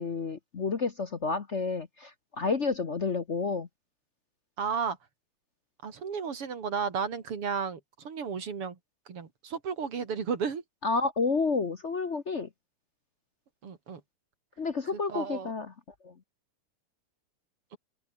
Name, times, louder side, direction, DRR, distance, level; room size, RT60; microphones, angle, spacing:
voice 1, 0.0-2.1 2.4-3.7 10.8-12.5 14.6-15.7 16.0-16.1, left 4 dB, 40° left, 1.2 m, -30 dB
voice 2, 4.6-5.0 5.8-8.8 9.1-10.6 13.6-14.0 14.9-15.5, right 6 dB, 85° right, 3.6 m, -33 dB
omnidirectional pair, 2.4 m